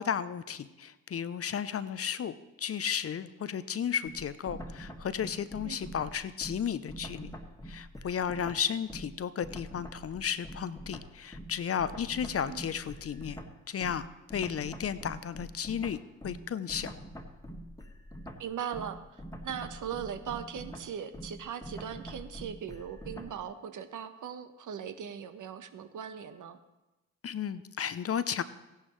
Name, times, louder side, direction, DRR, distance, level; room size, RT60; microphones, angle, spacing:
voice 1, 0.0-7.4 7.7-13.4 13.7-14.1 14.3-17.0 27.2-28.4, left 8 dB, 40° left, 14 dB, 0.7 m, -34 dB
sound 1, 4.0-9.2 9.4-23.4, equal, 10° left, 1.7 m, -45 dB
voice 2, 18.4-26.6, right 8 dB, 55° right, 9 dB, 1.2 m, -39 dB
15.5 x 11.0 x 3.2 m, 1.0 s
hypercardioid pair, 45°, 37 cm